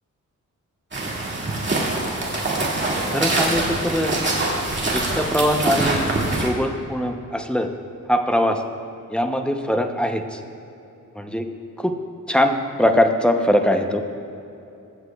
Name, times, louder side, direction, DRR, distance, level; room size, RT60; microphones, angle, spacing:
sound 1, 0.9-6.5, right 2 dB, 35° right, 2.0 m, -24 dB
voice 1, 3.1-4.2 4.9-7.7 8.1-8.6 9.1-10.4 11.2-11.5 11.8-12.0 12.3-14.0, equal, 5° left, 5 dB, 0.6 m, -22 dB
22.0 x 8.1 x 2.3 m, 2.8 s
wide cardioid pair, 110°, 33 cm